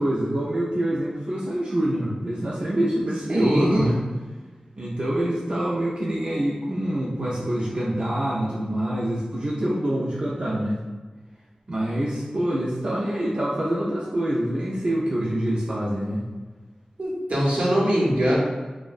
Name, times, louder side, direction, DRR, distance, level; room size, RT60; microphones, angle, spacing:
voice 1, 0.0-4.0 4.8-10.8 11.7-16.2, right 1 dB, 45° right, -6 dB, 0.3 m, -25 dB
voice 2, 3.3-3.9 17.0-18.3, equal, 70° right, -5 dB, 0.7 m, -22 dB
2.5 x 2.0 x 2.4 m, 1.3 s
wide cardioid pair, 75°, 2 cm